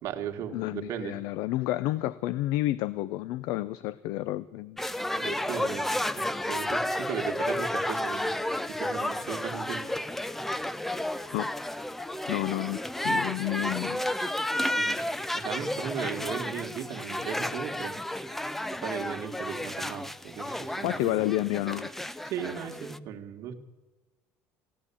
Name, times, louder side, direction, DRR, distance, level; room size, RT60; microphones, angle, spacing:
voice 1, 0.0-1.2 5.2-9.8 14.7-14.9 15.3-18.4 18.8-21.2 22.2-23.5, right 9 dB, 50° right, 3 dB, 1.7 m, -37 dB
voice 2, 0.5-4.8 11.3-11.5 12.3-14.0 20.8-21.9, left 16 dB, 75° left, 18 dB, 0.5 m, -30 dB
sound 1, 4.8-23.0, left 1 dB, 5° left, 0.4 m, -32 dB
16.0 x 10.5 x 8.4 m, 1.2 s
cardioid pair, 160°, 6 cm